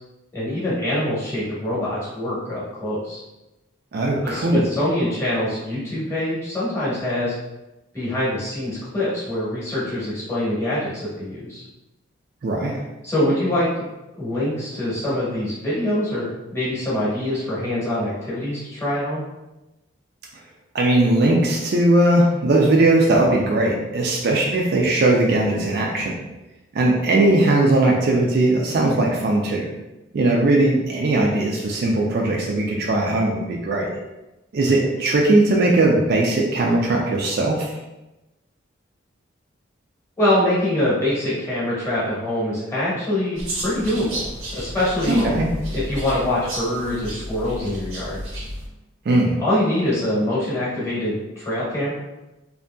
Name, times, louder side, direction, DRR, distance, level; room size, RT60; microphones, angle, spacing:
voice 1, 0.3-3.2 4.2-7.3 7.9-11.6 13.0-13.7 14.2-16.3 16.5-19.2 40.2-44.2 44.5-45.2 45.7-48.2 49.4-51.9, left 1 dB, 15° left, -9 dB, 0.9 m, -24 dB
voice 2, 3.9-4.7 12.4-12.8 20.7-26.2 26.7-29.7 30.1-33.9 34.5-37.7 45.1-45.5 49.1-49.4, right 2 dB, 50° right, -1 dB, 0.3 m, -19 dB
sound 1, 43.4-48.7, right 1 dB, 80° right, 0.7 m, -31 dB
2.6 x 2.5 x 2.2 m, 1.0 s
head